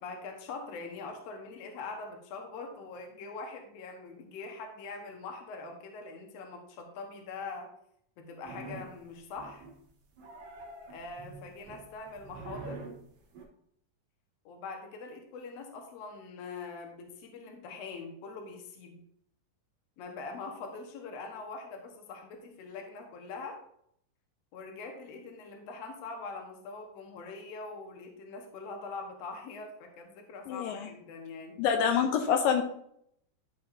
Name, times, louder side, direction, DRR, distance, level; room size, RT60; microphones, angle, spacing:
voice 1, 0.0-7.7 8.2-9.7 10.9-12.8 14.5-19.0 20.0-23.6 24.5-31.6, left 4 dB, 60° left, 3 dB, 1.9 m, -43 dB
sound 1, 8.4-9.0 9.4-9.8 10.2-13.5, right 3 dB, 60° right, 1.3 m, -45 dB
voice 2, 30.5-30.9 31.6-32.6, left 7 dB, 80° left, 5 dB, 2.3 m, -26 dB
11.0 x 5.7 x 2.6 m, 0.70 s
omnidirectional pair, 4.0 m